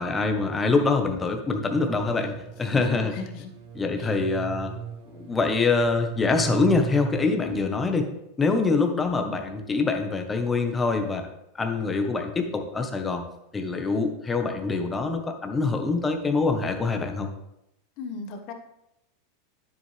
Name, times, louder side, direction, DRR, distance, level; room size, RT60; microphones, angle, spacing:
voice 1, 0.0-3.1 3.7-4.7 5.1-8.0 8.4-11.3 11.5-13.2 13.5-17.3, left 4 dB, 15° left, 4 dB, 1.2 m, -25 dB
sound 1, 1.7-7.7, right 8 dB, 65° right, 1.6 m, -37 dB
voice 2, 2.7-3.5 4.0-4.2 7.4-7.8 18.0-18.5, left 5 dB, 50° left, 5 dB, 1.3 m, -37 dB
9.8 x 7.6 x 3.4 m, 0.84 s
supercardioid pair, 125°, 0 cm